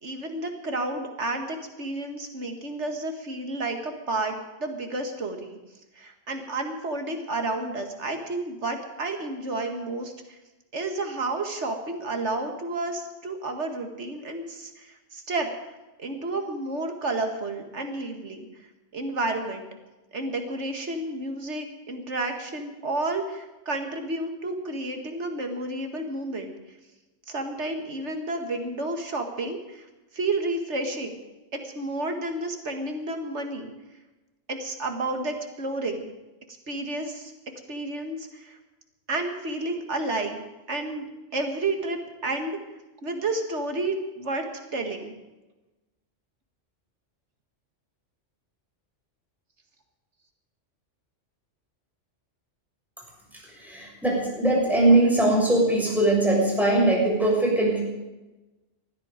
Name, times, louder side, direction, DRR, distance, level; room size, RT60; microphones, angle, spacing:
voice 1, 0.0-5.6 6.0-10.4 10.7-15.5 16.0-18.5 18.9-19.7 20.1-26.5 27.3-29.9 30.1-31.1 31.5-33.7 34.5-36.1 36.7-37.3 37.7-38.6 39.1-41.0 41.3-42.6 43.0-45.1, right 2 dB, 65° right, 5 dB, 2.2 m, -31 dB
voice 2, 53.3-57.8, right 2 dB, ahead, -3 dB, 6.3 m, -21 dB
19.5 x 13.5 x 5.1 m, 1.1 s
omnidirectional pair, 1.3 m